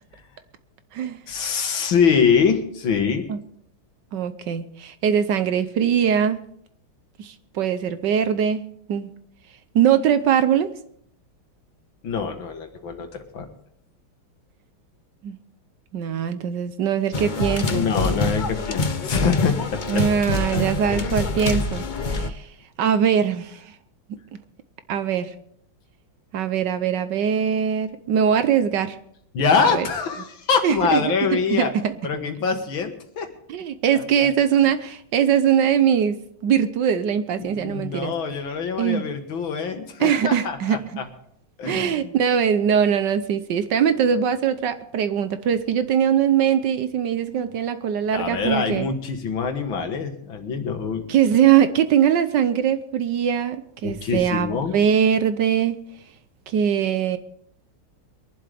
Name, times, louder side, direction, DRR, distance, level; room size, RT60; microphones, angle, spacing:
voice 1, 1.3-3.3 12.0-13.5 17.7-20.1 20.5-21.2 29.3-31.7 32.0-33.3 34.2-34.3 37.4-41.1 41.6-42.1 48.1-51.0 53.8-54.8, left 6 dB, 75° left, 6 dB, 2.4 m, -24 dB
voice 2, 4.1-6.4 7.2-8.6 8.9-9.1 9.7-10.7 15.2-15.4 15.9-17.9 19.9-22.5 22.8-23.6 24.1-24.2 24.9-25.3 26.3-29.0 29.6-29.9 30.6-31.0 31.3-31.9 33.5-38.1 38.8-39.0 40.0-40.8 41.7-48.9 51.1-55.8 56.5-57.2, right 8 dB, 65° right, 11 dB, 1.4 m, -21 dB
sound 1, 17.1-22.3, left 3 dB, 60° left, 0.5 m, -26 dB
23.5 x 11.5 x 3.4 m, 0.68 s
omnidirectional pair, 2.2 m